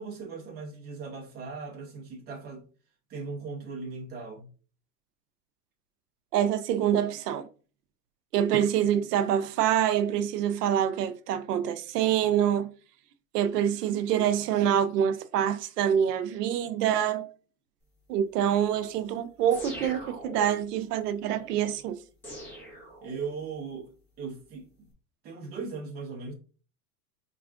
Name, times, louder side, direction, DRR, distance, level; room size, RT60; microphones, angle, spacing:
voice 1, 0.0-2.7 3.1-4.5 23.0-23.9 24.2-24.7 25.2-26.3, right 4 dB, 20° right, 0.7 m, -38 dB
voice 2, 6.3-7.5 8.3-12.7 13.3-17.3 18.1-22.0, right 9 dB, 90° right, 0.6 m, -26 dB
sound 1, 19.5-20.7 22.2-23.5, equal, 5° left, 0.9 m, -42 dB
4.2 x 2.4 x 2.4 m
supercardioid pair, 150°, 46 cm